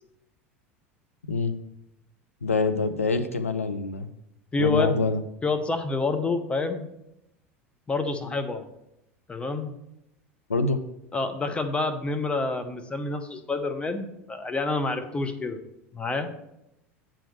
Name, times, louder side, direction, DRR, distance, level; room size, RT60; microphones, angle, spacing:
voice 1, 2.4-4.1 4.6-5.2 10.5-10.8, left 3 dB, 85° left, 9 dB, 0.6 m, -25 dB
voice 2, 4.5-5.0 5.4-6.9 7.9-8.7 9.3-9.9 11.1-15.6 15.9-16.3, left 3 dB, 15° left, 7 dB, 0.9 m, -28 dB
8.9 x 3.6 x 6.6 m, 0.85 s
figure-of-eight pair, 80°, 7 cm